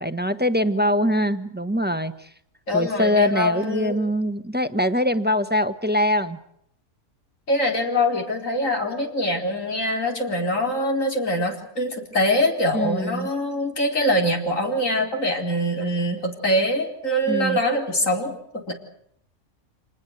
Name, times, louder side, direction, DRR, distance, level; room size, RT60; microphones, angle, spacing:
voice 1, 0.0-2.3 2.7-6.4 12.7-13.3 17.3-17.6, equal, 5° right, 10 dB, 1.2 m, -23 dB
voice 2, 2.7-4.0 7.5-18.7, left 1 dB, 60° left, 2 dB, 4.9 m, -23 dB
28.0 x 20.0 x 8.0 m, 0.70 s
omnidirectional pair, 1.5 m